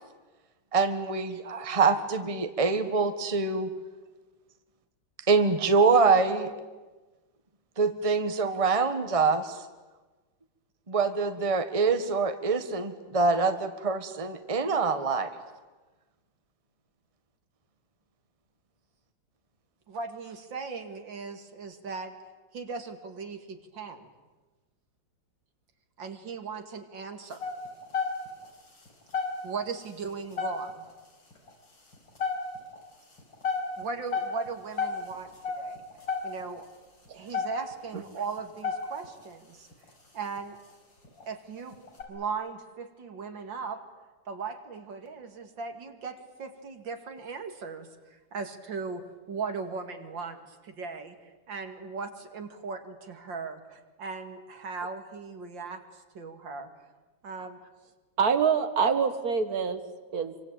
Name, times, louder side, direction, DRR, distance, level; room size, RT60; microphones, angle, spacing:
voice 1, 0.7-3.7 5.3-6.5 7.8-9.6 10.9-15.3, right 4 dB, 20° right, 8 dB, 1.5 m, -25 dB
voice 2, 19.9-22.1 22.5-24.1 26.0-27.5 29.4-30.9 33.8-35.8 36.2-36.7 37.1-39.7 40.1-40.6 41.3-41.8 42.1-43.8 44.3-51.2 51.5-56.7 57.2-57.6, right 4 dB, 70° right, 6 dB, 2.8 m, -38 dB
sound 1, 27.3-28.5 28.9-29.0 29.1-29.7 30.1-30.9 31.3-31.5 31.9-32.8 33.2-36.6 37.1-37.2 37.3-37.9 38.4-39.2 39.7-39.9 40.4-40.6 41.0-41.2 41.7-42.0, left 5 dB, 70° left, 5.5 m, -31 dB
voice 3, 58.2-59.8 60.1-60.3, right 6 dB, 50° right, 10 dB, 2.2 m, -25 dB
27.0 x 24.5 x 9.0 m, 1.2 s
omnidirectional pair, 2.1 m